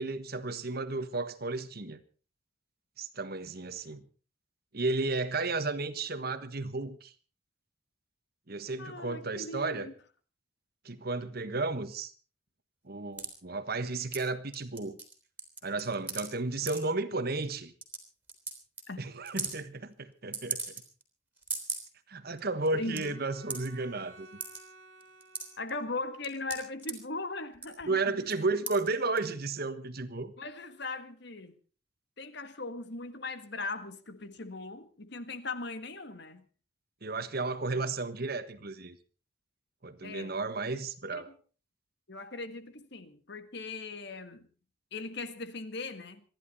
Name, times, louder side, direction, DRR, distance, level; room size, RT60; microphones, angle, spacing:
voice 1, 0.0-2.0 3.0-4.0 4.7-7.1 8.5-9.9 10.8-12.1 12.8-15.0 15.6-17.7 19.0-20.6 22.1-24.4 27.9-30.3 37.0-39.0 39.8-41.3, right 3 dB, 50° right, 1.4 m, -33 dB
voice 2, 8.8-9.9 18.9-19.1 22.7-23.2 25.6-28.2 30.4-31.5 32.2-36.4 37.7-37.8 40.0-40.4 41.1-41.3 42.1-44.5 44.9-46.2, left 3 dB, 55° left, 1.6 m, -39 dB
sound 1, 13.2-13.3 14.1-14.2 14.5-15.1 15.4-16.3 16.7-16.8 17.4-17.5 17.8-18.0 18.3-18.5 18.8-18.9 19.3-19.6 20.3-21.0 21.4-21.9 22.3-22.4 22.7-23.0 23.5-23.7 24.4-24.6 25.0-25.7 26.2-26.9 27.5-27.8 28.3-28.4 28.7-28.9 29.2-29.3, right 4 dB, 10° right, 3.4 m, -37 dB
Bowed string instrument, 22.7-26.2, right 3 dB, 75° right, 2.1 m, -54 dB
26.5 x 11.0 x 4.2 m
head